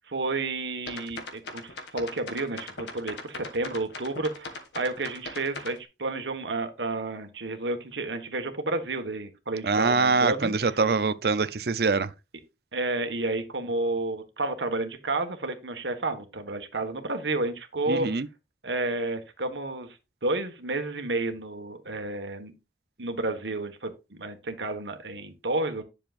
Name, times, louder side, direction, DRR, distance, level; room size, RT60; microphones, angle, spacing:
voice 1, 0.1-10.8 12.7-18.1 18.6-20.0 20.2-22.5 23.0-25.8, right 2 dB, 90° right, 1.5 m, -31 dB
sound 1, 0.9-5.8, left 3 dB, 90° left, 2.1 m, -39 dB
voice 2, 9.6-12.1 17.9-18.3, right 4 dB, 60° right, 0.6 m, -24 dB
10.5 x 6.6 x 2.5 m
head